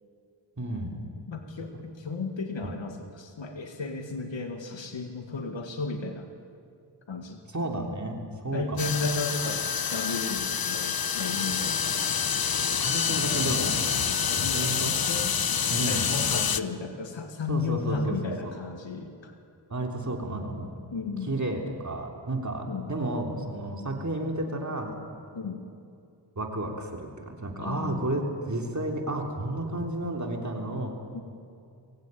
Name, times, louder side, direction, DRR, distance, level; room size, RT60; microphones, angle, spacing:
voice 1, 0.6-0.9 1.7-1.8 2.6-2.7 7.5-8.9 12.8-14.1 14.4-14.9 15.7-16.1 17.5-18.6 19.7-20.7 21.2-24.9 26.4-31.0, right 1 dB, 40° right, 1 dB, 3.6 m, -32 dB
voice 2, 1.3-6.3 7.1-7.4 8.5-9.6 9.9-12.0 13.3-13.7 14.2-15.3 15.9-19.3 20.9-21.4 22.7-22.9 25.3-25.6 27.6-28.2 31.1-31.2, left 3 dB, 80° left, 3 dB, 2.0 m, -34 dB
sound 1, 8.8-16.6, left 7 dB, 50° left, 0.9 m, -27 dB
24.0 x 16.0 x 9.2 m, 2.5 s
cardioid pair, 60°, 45 cm